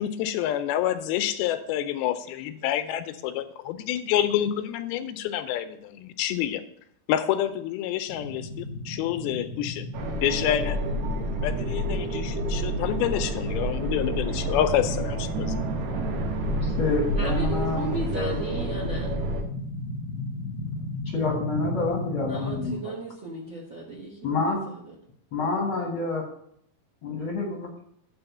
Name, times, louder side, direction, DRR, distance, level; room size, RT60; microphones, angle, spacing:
voice 1, 0.0-6.6 7.1-9.9 10.2-10.9 11.4-15.5, left 11 dB, 85° left, 10 dB, 2.5 m, -28 dB
sound 1, 8.1-22.7, left 2 dB, 35° left, 1.0 m, -35 dB
sound 2, 9.9-19.4, right 2 dB, 80° right, 2.9 m, -29 dB
voice 2, 16.5-18.6 21.1-22.9 24.2-24.6 25.3-26.2 27.0-27.8, left 3 dB, 55° left, 0 dB, 1.5 m, -28 dB
voice 3, 17.2-19.1 22.3-24.2 24.4-24.5, right 2 dB, 55° right, -3 dB, 1.3 m, -35 dB
8.8 x 4.2 x 7.0 m, 0.67 s
omnidirectional pair, 4.4 m